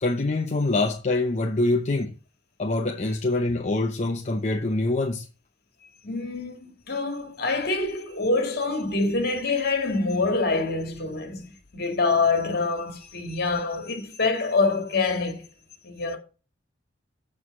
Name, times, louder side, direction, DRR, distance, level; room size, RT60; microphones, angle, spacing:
voice 1, 0.0-2.1 2.6-5.3, left 2 dB, 40° left, 0.8 m, -25 dB
voice 2, 6.0-11.4 11.7-15.4 15.8-16.2, left 3 dB, 60° left, 2.3 m, -25 dB
7.9 x 4.8 x 7.1 m
head